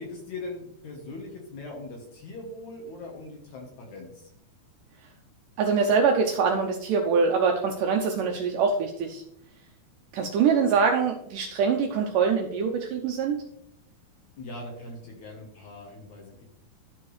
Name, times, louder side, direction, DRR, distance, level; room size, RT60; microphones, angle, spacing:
voice 1, 0.0-4.2 14.4-16.4, left 2 dB, 65° left, 1 dB, 2.1 m, -40 dB
voice 2, 5.6-9.2 10.1-13.4, right 5 dB, 80° right, 3 dB, 1.9 m, -24 dB
12.5 x 4.4 x 3.1 m, 0.76 s
omnidirectional pair, 4.4 m